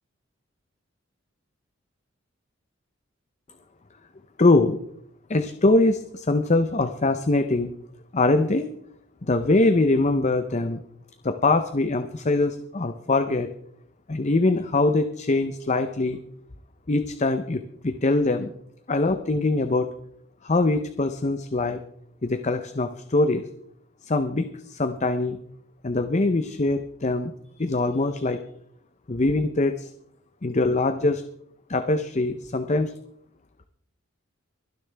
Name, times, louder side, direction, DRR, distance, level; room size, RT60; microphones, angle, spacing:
voice 1, 4.4-4.8 5.3-7.7 8.1-8.7 9.2-10.8 11.2-13.5 14.1-16.2 16.9-18.5 18.9-19.9 20.4-21.8 22.2-23.4 24.0-25.4 25.8-27.3 27.6-28.4 29.1-29.9 30.4-31.2 31.7-32.9, left 2 dB, 35° left, 8 dB, 0.7 m, -23 dB
24.0 x 10.0 x 3.4 m, 0.70 s
head